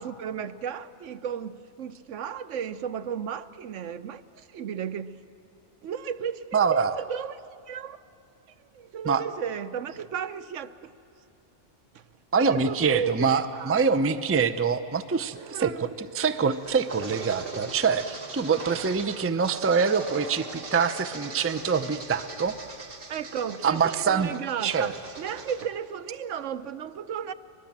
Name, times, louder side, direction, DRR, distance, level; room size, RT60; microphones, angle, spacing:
voice 1, 0.0-5.2 5.8-7.4 7.7-8.0 8.7-10.9 11.9-12.0 12.4-13.7 15.3-15.8 23.1-24.9 25.2-27.3, right 8 dB, 80° right, 1.1 m, -34 dB
voice 2, 6.5-6.9 9.0-9.2 12.3-22.6 23.6-24.3 24.6-24.9, right 5 dB, 20° right, 0.4 m, -25 dB
sound 1, 16.0-25.6, right 3 dB, 50° right, 1.6 m, -40 dB
22.5 x 22.5 x 7.4 m
omnidirectional pair, 1.2 m